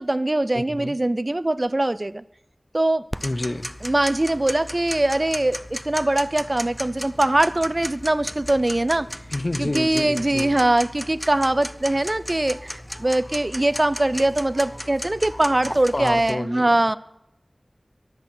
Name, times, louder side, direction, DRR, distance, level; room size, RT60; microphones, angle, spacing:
voice 1, 0.0-2.2 2.7-3.1 3.8-9.1 9.6-17.0, right 1 dB, 40° right, 0.4 m, -22 dB
voice 2, 0.5-0.9 3.2-3.7 9.3-10.6 15.9-17.0, left 2 dB, 45° left, 0.8 m, -29 dB
Tick-tock, 3.1-16.3, equal, 5° left, 0.6 m, -36 dB
22.5 x 8.2 x 4.3 m
wide cardioid pair, 50°, 0 cm